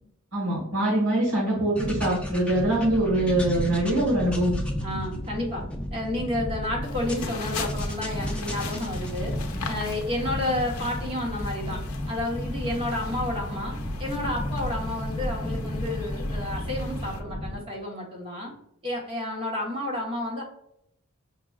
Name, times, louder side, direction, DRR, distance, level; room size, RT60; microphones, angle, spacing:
voice 1, 0.3-4.6, right 1 dB, 75° right, -6 dB, 1.3 m, -23 dB
sound 1, 1.8-17.6, left 1 dB, 5° left, 0.4 m, -33 dB
voice 2, 4.8-5.6 5.9-9.3 9.6-11.8 12.0-18.5 18.8-20.4, left 1 dB, 25° right, -2 dB, 1.0 m, -31 dB
sound 2, 6.8-17.2, left 4 dB, 80° left, 0.5 m, -39 dB
5.7 x 2.2 x 2.3 m, 0.79 s
head